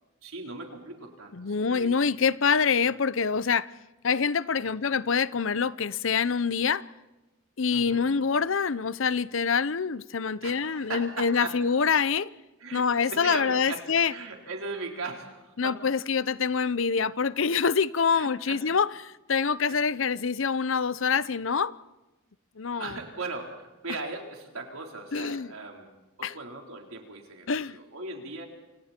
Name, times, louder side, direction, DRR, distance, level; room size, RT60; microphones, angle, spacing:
voice 1, 0.2-2.0 4.6-4.7 7.7-8.1 10.4-11.5 12.6-15.8 18.1-18.6 22.8-25.9 26.2-28.5, right 3 dB, 90° right, 4.3 m, -38 dB
voice 2, 1.3-3.7 4.0-6.8 7.6-12.3 12.7-14.1 15.6-21.7 22.6-23.0 25.1-25.5 26.2-26.3 27.5-27.8, left 5 dB, 65° left, 0.7 m, -26 dB
28.0 x 27.5 x 4.5 m
head